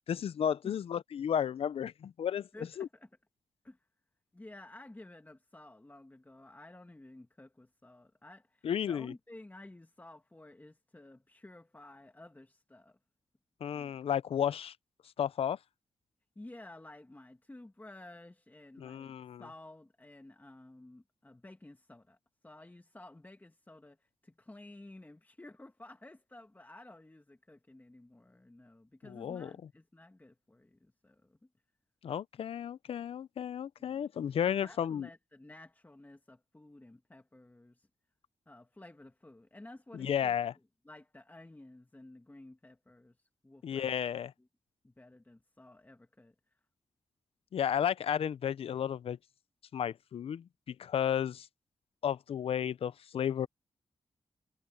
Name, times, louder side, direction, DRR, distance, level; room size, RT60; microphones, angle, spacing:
voice 1, 0.1-2.5 2.8-2.9 8.6-9.1 13.6-14.7 15.2-15.6 18.8-19.4 29.1-29.5 32.0-35.1 39.9-40.5 43.6-44.3 47.5-49.2 49.7-51.5 52.0-53.5, left 9 dB, 80° left, 0.6 m, -33 dB
voice 2, 2.5-3.1 3.6-3.9 4.3-13.0 16.4-22.2 22.4-31.5 33.8-34.1 34.4-37.9 38.5-40.4 40.8-44.0 44.4-44.5 44.8-46.6, left 2 dB, 20° left, 2.1 m, -53 dB
cardioid pair, 60°, 10 cm